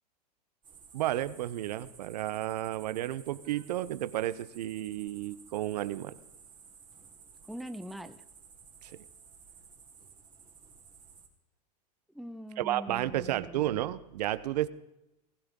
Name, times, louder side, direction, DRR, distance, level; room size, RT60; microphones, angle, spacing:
sound 1, 0.6-11.3, right 6 dB, 25° right, 3.5 m, -55 dB
voice 1, 0.9-6.2 8.8-9.0 12.6-14.7, right 14 dB, 75° right, 16 dB, 0.9 m, -32 dB
voice 2, 7.4-8.2 12.1-13.7, equal, ahead, 10 dB, 0.8 m, -42 dB
19.5 x 16.5 x 3.8 m, 0.91 s
hypercardioid pair, 110°, 21 cm